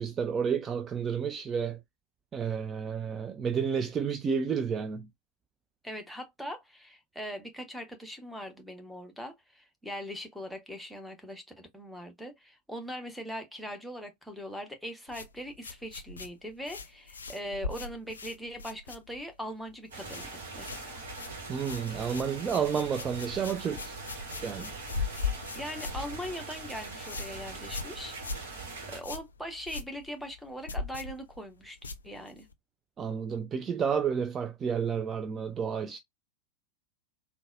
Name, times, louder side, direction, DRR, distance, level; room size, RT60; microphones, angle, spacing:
voice 1, 0.0-1.8 2.3-5.1 21.5-23.9 24.4-24.7 33.0-36.0, right 7 dB, 25° right, 0.3 m, -31 dB
voice 2, 5.8-21.0 25.5-28.2 28.6-32.5, equal, ahead, 0.8 m, -41 dB
sound 1, 15.1-19.4 19.7-20.3 20.6-32.5, left 4 dB, 70° left, 0.4 m, -40 dB
sound 2, 19.9-29.0, right 3 dB, 65° right, 1.1 m, -42 dB
3.8 x 2.2 x 2.4 m
figure-of-eight pair, 90°, 0 cm